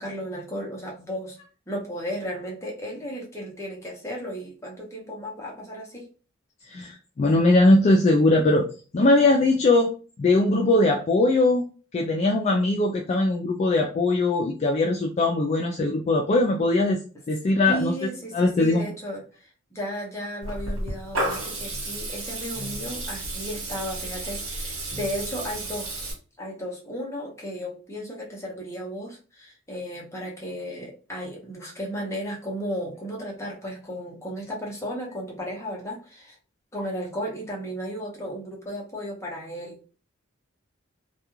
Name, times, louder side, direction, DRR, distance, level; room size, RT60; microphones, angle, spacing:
voice 1, 0.0-1.4 1.7-6.1 17.7-36.4 36.7-39.9, equal, 15° left, -2 dB, 0.7 m, -34 dB
voice 2, 6.6-8.7 8.9-9.9 10.2-11.6 11.9-17.0 17.3-17.9 18.3-18.9, left 2 dB, 35° left, 0 dB, 0.3 m, -20 dB
Water tap faucet / Liquid, 20.4-26.1, right 1 dB, 80° right, 1.0 m, -32 dB
2.3 x 2.3 x 2.9 m, 0.37 s
head